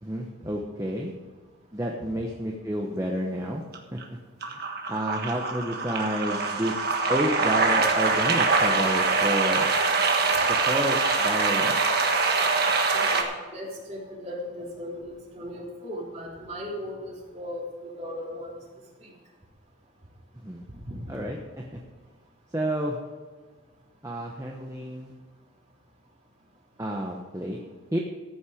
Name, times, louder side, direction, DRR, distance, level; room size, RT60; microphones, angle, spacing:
voice 1, 0.0-1.1 1.7-3.6 3.9-4.0 4.5-4.6 4.9-6.8 7.1-9.7 10.5-11.8 20.4-20.6 21.1-21.8 22.5-23.0 24.0-25.1 26.8-27.6 27.9-28.0, equal, 15° right, -1 dB, 1.0 m, -30 dB
sound 1, 3.7-4.0 4.4-13.2, right 4 dB, 50° right, 1.6 m, -24 dB
voice 2, 12.9-18.6 19.0-19.1 20.8-21.0, left 1 dB, 35° right, -3 dB, 3.3 m, -37 dB
14.5 x 8.9 x 5.1 m, 1.4 s
head